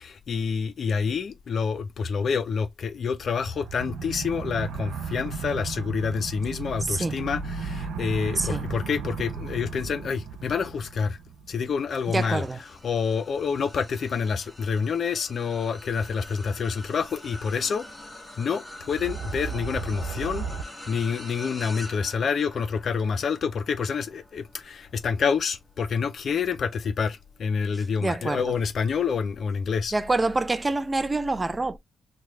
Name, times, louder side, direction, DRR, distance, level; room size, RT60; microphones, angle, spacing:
voice 1, 0.0-11.2 11.5-12.4 12.8-17.9 18.4-20.5 20.9-29.9, left 6 dB, 60° left, 0.5 m, -27 dB
sound 1, 3.4-11.9 18.8-20.6, right 5 dB, 80° right, 0.5 m, -35 dB
voice 2, 6.9-7.2 8.4-8.6 12.1-12.6 28.0-28.5 29.9-31.8, right 3 dB, 25° right, 0.3 m, -26 dB
sound 2, 11.9-27.4 27.9-28.2 29.4-29.5, left 1 dB, 5° left, 1.3 m, -45 dB
3.1 x 2.2 x 3.5 m
supercardioid pair, 55°, 0 cm